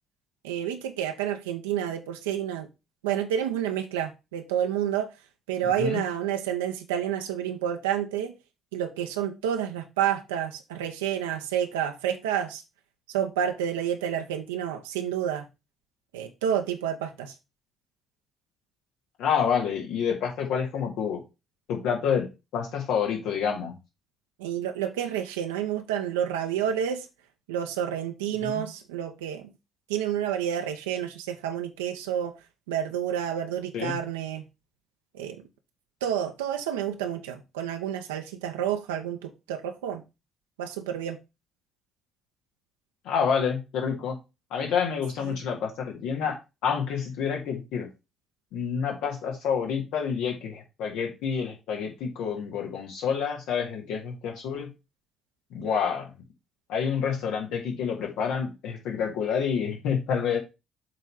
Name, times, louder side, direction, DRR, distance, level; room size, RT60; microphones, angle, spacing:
voice 1, 0.4-2.7 3.0-5.1 5.5-8.3 8.7-12.6 13.1-15.5 16.1-17.3 24.4-27.1 27.5-29.5 29.9-32.3 32.7-34.4 35.1-35.4 36.0-40.0 40.6-41.2 45.3-45.4, right 9 dB, 80° right, 0.7 m, -29 dB
voice 2, 19.2-21.2 21.7-23.7 28.4-28.6 33.7-34.0 43.1-44.2 44.5-47.9 48.5-54.7 55.5-56.1 56.7-60.4, left 7 dB, 65° left, 1.9 m, -28 dB
7.6 x 3.3 x 5.6 m
figure-of-eight pair, 45°, 0 cm